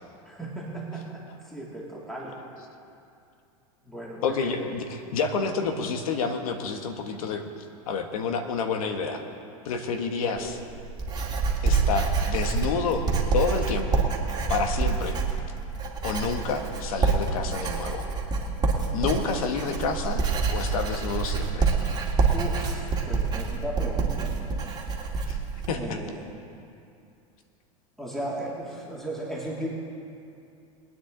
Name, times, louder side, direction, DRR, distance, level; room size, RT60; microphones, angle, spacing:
voice 1, 0.2-2.4 3.8-4.6 10.2-10.6 22.3-24.4 25.7-26.3 28.0-29.7, right 1 dB, ahead, -5 dB, 2.8 m, -36 dB
voice 2, 4.2-4.8 5.1-7.5 7.9-9.2 9.6-10.6 11.6-14.0 14.5-15.2 16.0-18.1 18.9-20.2 20.5-21.7 24.5-24.6 25.3-25.4 25.7-26.0, left 5 dB, 80° left, 6 dB, 1.5 m, -29 dB
Writing, 10.4-25.7, right 4 dB, 25° right, 2.1 m, -27 dB
22.0 x 9.4 x 3.9 m, 2.6 s
hypercardioid pair, 110°, 18 cm